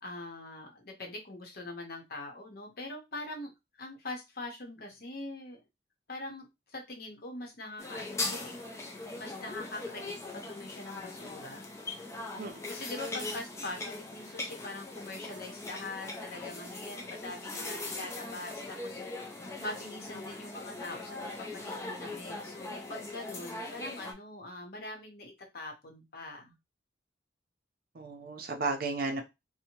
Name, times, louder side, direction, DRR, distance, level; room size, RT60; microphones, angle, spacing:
voice 1, 0.0-5.6 6.1-8.6 9.2-11.7 12.7-19.0 19.6-26.5, left 2 dB, 55° left, 0.8 m, -43 dB
sound 1, 7.8-24.1, left 2 dB, 15° left, 0.4 m, -40 dB
voice 2, 27.9-29.2, right 3 dB, 55° right, 0.6 m, -34 dB
2.7 x 2.1 x 2.9 m
head